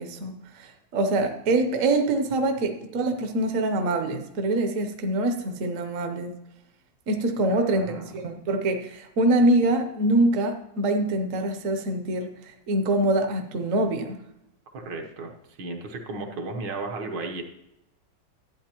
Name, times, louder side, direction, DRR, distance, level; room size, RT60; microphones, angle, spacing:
voice 1, 0.0-6.3 7.1-14.2, right 2 dB, 55° right, 5 dB, 1.1 m, -24 dB
voice 2, 7.5-8.1 14.7-15.3 15.6-17.4, right 3 dB, 75° right, 3 dB, 1.7 m, -34 dB
12.0 x 8.5 x 3.0 m, 0.83 s
omnidirectional pair, 2.0 m